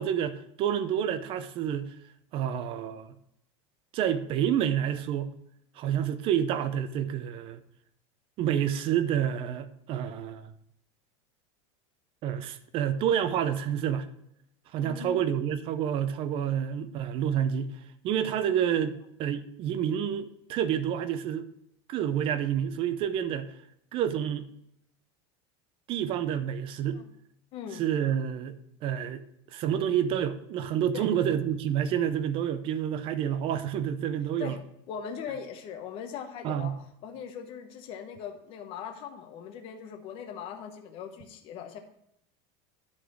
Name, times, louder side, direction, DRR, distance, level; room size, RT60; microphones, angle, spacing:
voice 1, 0.0-1.9 2.3-3.1 3.9-5.3 5.8-7.6 8.4-10.5 12.2-14.1 14.7-17.7 18.0-21.4 21.9-23.5 23.9-24.5 25.9-27.0 27.7-28.6 28.8-29.2 29.5-34.5 36.4-36.8, right 9 dB, 40° right, 0.7 m, -28 dB
voice 2, 14.8-15.3 26.9-27.0 27.5-27.8 30.9-31.1 34.4-34.6 34.9-41.8, left 7 dB, 40° left, 1.0 m, -40 dB
9.9 x 4.1 x 6.2 m
supercardioid pair, 155°, 14 cm